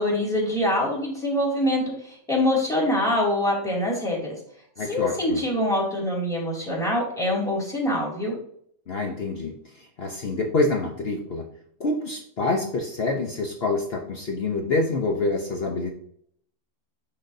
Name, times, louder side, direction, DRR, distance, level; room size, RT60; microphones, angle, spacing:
voice 1, 0.0-1.8 2.3-4.2 4.9-8.4, left 1 dB, ahead, -3 dB, 2.4 m, -24 dB
voice 2, 4.8-5.4 8.9-11.5 11.8-15.9, left 2 dB, 50° left, 1 dB, 0.9 m, -27 dB
10.0 x 3.9 x 2.7 m, 0.65 s
omnidirectional pair, 1.6 m